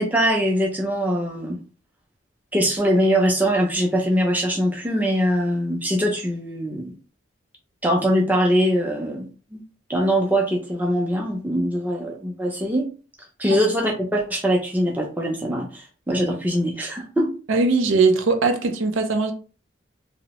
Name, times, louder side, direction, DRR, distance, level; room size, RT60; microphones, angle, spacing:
voice 1, 0.0-1.6 2.5-6.9 7.8-9.6 9.9-12.9 13.4-17.3, equal, 10° right, 0.5 m, -22 dB
voice 2, 17.5-19.3, right 4 dB, 80° right, 0.5 m, -20 dB
2.7 x 2.1 x 2.9 m
head